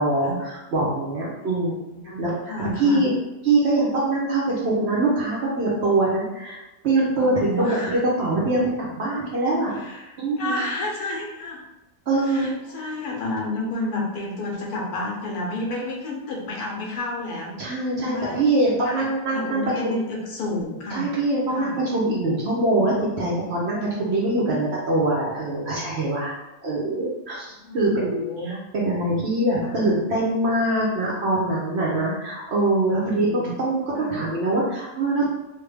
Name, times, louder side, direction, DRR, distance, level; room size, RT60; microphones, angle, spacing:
voice 1, 0.0-1.8 2.2-2.3 2.6-3.1 3.4-9.8 10.2-10.6 12.1-12.5 17.6-19.6 19.9-20.0 20.9-26.3 26.6-28.2 28.4-35.3, right 2 dB, 60° right, -5 dB, 0.8 m, -23 dB
voice 2, 1.4-3.1 7.2-8.0 9.8-11.6 12.3-21.1 21.5-21.7 27.6-28.6 29.6-29.7 32.9-33.5 34.0-34.1, left 2 dB, 80° left, -1 dB, 1.2 m, -31 dB
3.3 x 2.2 x 3.2 m, 0.98 s
omnidirectional pair, 1.6 m